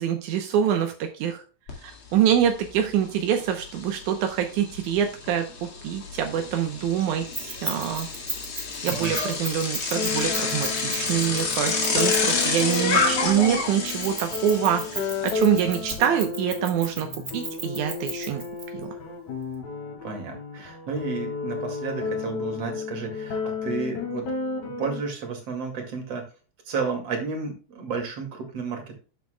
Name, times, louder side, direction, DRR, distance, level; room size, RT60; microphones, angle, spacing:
voice 1, 0.0-1.4 1.8-8.1 8.8-18.4 18.7-19.0, right 9 dB, 80° right, 5 dB, 2.3 m, -25 dB
Bicycle, 1.7-1.8 2.2-15.9, left 4 dB, 50° left, 2.6 m, -29 dB
Keys jangling, 7.3-13.0 13.9-18.6, right 2 dB, 25° right, 1.5 m, -34 dB
voice 2, 8.8-9.2 20.0-24.3 24.6-26.3 26.6-29.0, right 5 dB, 55° right, 3 dB, 3.2 m, -32 dB
sound 1, 9.9-25.0, left 5 dB, 70° left, 3.6 m, -32 dB
11.5 x 7.4 x 2.2 m, 0.36 s
omnidirectional pair, 3.5 m